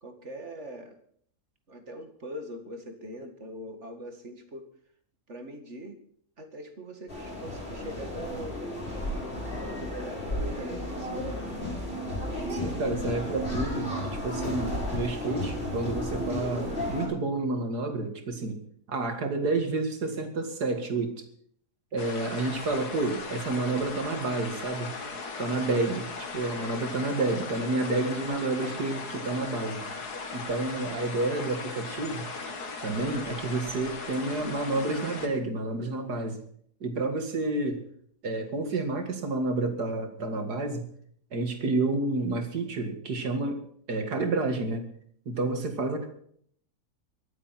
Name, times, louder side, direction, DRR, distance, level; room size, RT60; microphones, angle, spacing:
voice 1, 0.0-1.0 1.7-4.7 5.3-6.0 6.4-8.7 9.5-11.3, right 1 dB, 45° right, 6 dB, 2.3 m, -42 dB
sound 1, 7.1-17.1, left 1 dB, 35° left, 5.6 m, -33 dB
voice 2, 12.5-18.6 18.9-21.2 21.9-24.9 25.4-29.8 30.3-32.3 32.8-36.4 36.8-37.8 38.2-40.8 41.3-43.6 43.9-44.8 45.3-46.1, right 2 dB, 85° right, 6 dB, 2.7 m, -30 dB
sound 2, 22.0-35.3, left 4 dB, 75° left, 2.3 m, -38 dB
23.5 x 8.1 x 5.9 m, 0.62 s
omnidirectional pair, 1.7 m